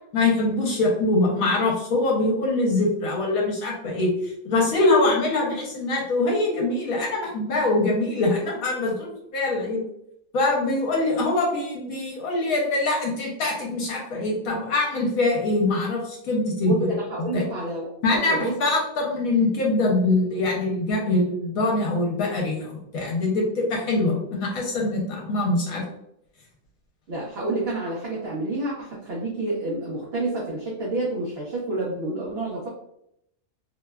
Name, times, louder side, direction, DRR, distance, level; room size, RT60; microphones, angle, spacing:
voice 1, 0.1-4.1 4.4-9.8 10.3-16.9 17.2-17.5 18.0-25.8, left 2 dB, 65° left, -1 dB, 1.0 m, -23 dB
voice 2, 16.6-18.5 27.1-32.7, right 2 dB, 75° right, -4 dB, 0.5 m, -29 dB
2.9 x 2.1 x 2.2 m, 0.76 s
omnidirectional pair, 1.7 m